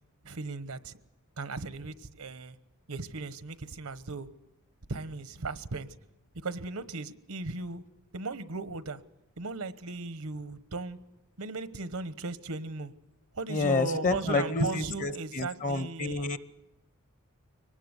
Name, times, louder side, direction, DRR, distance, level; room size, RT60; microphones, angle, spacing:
voice 1, 0.2-1.0 1.4-2.6 2.9-4.3 4.9-5.9 6.3-7.8 8.1-9.0 9.4-11.0 11.4-12.9 13.3-16.3, right 3 dB, 90° right, 13 dB, 1.1 m, -36 dB
voice 2, 13.5-16.4, left 3 dB, 40° left, 14 dB, 0.8 m, -29 dB
23.5 x 19.0 x 8.2 m, 0.91 s
head